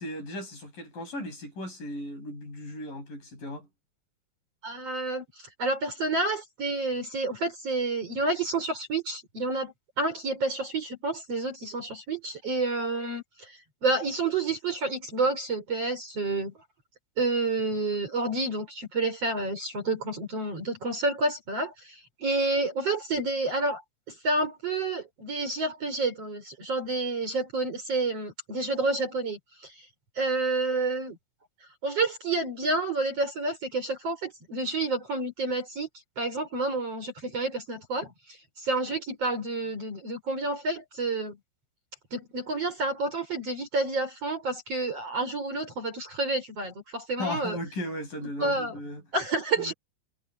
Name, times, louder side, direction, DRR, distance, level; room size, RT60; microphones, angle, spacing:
voice 1, 0.0-3.7 47.2-49.0 49.6-49.7, left 1 dB, 45° left, 9.5 m, -36 dB
voice 2, 4.6-5.2 5.6-13.5 13.8-16.5 17.2-23.8 24.1-29.7 30.2-31.2 31.8-35.9 36.2-38.1 38.6-41.4 42.1-47.6 48.2-48.7 49.1-49.7, right 2 dB, 35° right, 5.4 m, -29 dB
omnidirectional pair, 5.2 m